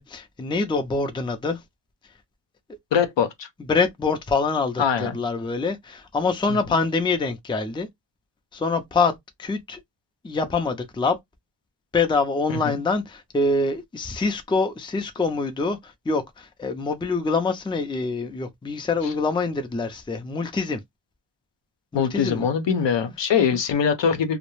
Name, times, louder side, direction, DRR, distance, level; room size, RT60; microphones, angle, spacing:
voice 1, 0.0-1.6 3.7-7.9 8.5-9.1 9.4-9.8 10.2-11.2 11.9-20.8 21.9-22.4, left 4 dB, 10° left, 0.4 m, -25 dB
voice 2, 2.9-3.5 4.8-5.2 6.5-6.6 12.5-12.8 19.0-19.1 21.9-24.4, left 7 dB, 70° left, 0.7 m, -22 dB
2.3 x 2.0 x 3.0 m
wide cardioid pair, 95°, 45 cm